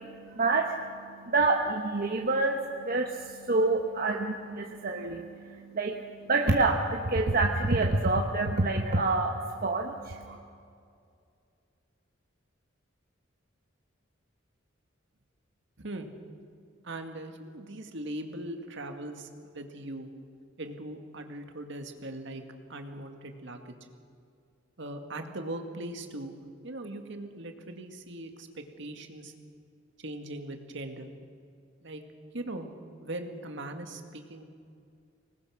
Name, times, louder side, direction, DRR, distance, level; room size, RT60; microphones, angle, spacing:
voice 1, 0.0-10.4, right 3 dB, 50° right, 2 dB, 1.2 m, -28 dB
voice 2, 15.8-16.1 16.8-20.1 20.6-22.4 22.7-23.8 24.8-26.3 26.6-29.3 30.0-31.1 31.8-32.0 32.3-32.7 33.0-34.5, right 1 dB, 65° right, 5 dB, 2.0 m, -40 dB
26.0 x 19.5 x 6.5 m, 2.4 s
head